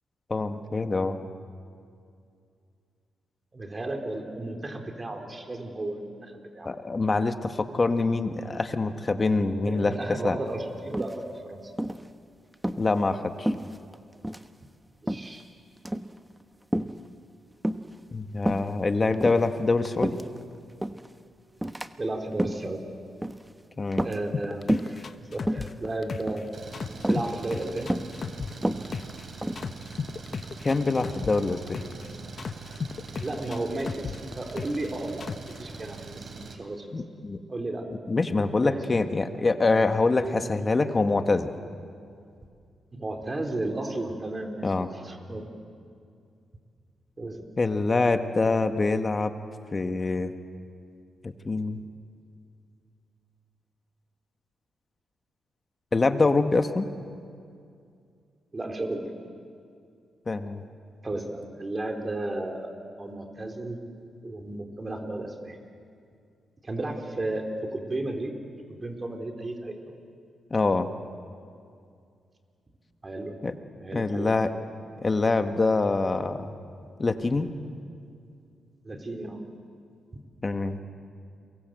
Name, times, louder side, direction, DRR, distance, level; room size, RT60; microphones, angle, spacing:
voice 1, 0.3-1.2 6.6-9.9 10.2-10.4 12.8-13.5 18.1-20.2 23.8-24.0 30.6-31.8 36.9-37.4 38.1-41.5 44.6-44.9 47.6-49.3 49.7-50.3 51.2-51.8 55.9-56.9 60.3-60.6 70.5-70.9 73.4-73.5 73.9-74.5 75.0-76.5 77.0-77.5 80.4-80.8, left 3 dB, 35° left, 7 dB, 1.8 m, -25 dB
voice 2, 3.5-6.7 9.6-11.7 15.0-15.4 22.0-22.8 24.0-26.5 27.0-27.9 33.2-36.9 37.5-37.9 38.6-38.8 40.2-40.4 42.9-44.7 45.0-45.5 47.2-47.4 58.5-59.0 61.0-63.8 64.2-65.6 66.6-68.3 68.7-69.9 73.0-73.4 73.8-74.5 78.8-79.4, right 2 dB, 30° right, 4 dB, 4.3 m, -34 dB
sound 1, 10.9-11.4 11.8-12.1 12.5-12.8 13.4-14.0 14.2-14.5 15.1-15.4 15.8-16.1 16.7-17.0 17.6-18.0 18.4-18.7 19.1-20.4 20.8-21.1 21.6-21.9 22.3-22.7 23.2-23.5 23.9-24.4 24.7-25.0 25.4-25.7 26.3-26.6 27.0-27.3 27.9-28.2 28.5-29.7, right 1 dB, 10° right, 1.1 m, -29 dB
sound 2, 24.3-26.4 26.7-29.2 29.6-32.0 32.4-34.9 35.2-35.6, left 5 dB, 50° left, 1.0 m, -35 dB
Engine, 26.5-36.5, right 4 dB, 55° right, 3.6 m, -42 dB
30.0 x 23.0 x 7.9 m, 2.4 s
cardioid pair, 65°, 0 cm